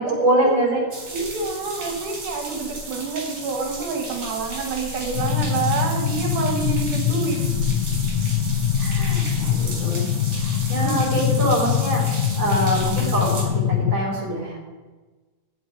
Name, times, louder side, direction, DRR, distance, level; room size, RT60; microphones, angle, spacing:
voice 1, 0.0-0.8 8.8-10.0 10.3-14.6, right 1 dB, 25° right, -3 dB, 4.2 m, -24 dB
voice 2, 0.8-7.4 10.8-11.3, right 4 dB, 80° right, 1 dB, 3.2 m, -28 dB
sound 1, 0.9-13.4, right 1 dB, 50° right, 4.7 m, -33 dB
sound 2, 5.1-13.9, left 9 dB, 80° left, 2.2 m, -23 dB
11.5 x 6.8 x 9.3 m, 1.3 s
omnidirectional pair, 3.5 m